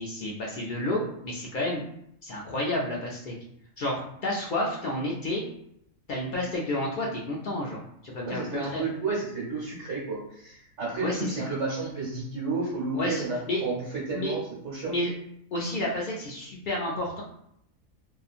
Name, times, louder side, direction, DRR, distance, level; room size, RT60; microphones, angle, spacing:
voice 1, 0.0-1.8 2.2-3.3 3.8-5.4 6.1-8.8 11.0-11.5 12.9-13.6 14.1-14.3 14.9-15.1 15.5-17.2, left 1 dB, 80° left, -3 dB, 0.4 m, -30 dB
voice 2, 8.2-14.9, right 3 dB, 70° right, -6 dB, 1.3 m, -31 dB
2.8 x 2.3 x 2.4 m, 0.74 s
omnidirectional pair, 1.4 m